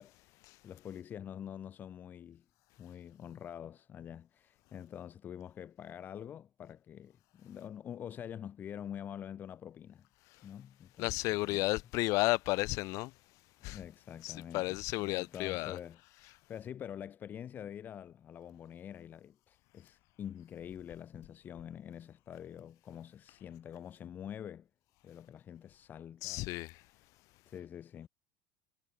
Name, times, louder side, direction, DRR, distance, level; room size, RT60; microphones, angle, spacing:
voice 1, 0.0-2.4 2.8-10.1 10.4-11.6 13.6-24.7 25.0-26.5 27.5-28.1, left 9 dB, 25° left, 4.2 m, -46 dB
voice 2, 11.0-13.1 13.6-13.8 14.2-15.8 26.2-26.8, left 22 dB, 50° left, 3.5 m, -33 dB
cardioid pair, 165°, 7 cm